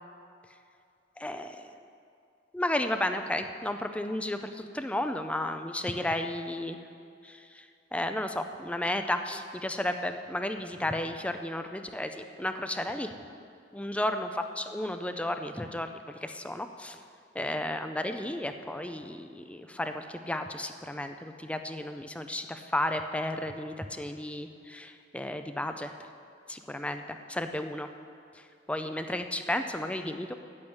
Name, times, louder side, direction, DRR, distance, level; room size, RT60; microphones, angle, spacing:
voice 1, 1.2-1.7 2.5-6.8 7.2-7.7 7.9-13.1 13.7-14.3 14.6-17.0 17.3-25.9 26.5-27.9 28.3-30.3, left 1 dB, 5° left, 7 dB, 0.5 m, -33 dB
10.0 x 8.8 x 8.0 m, 2.4 s
head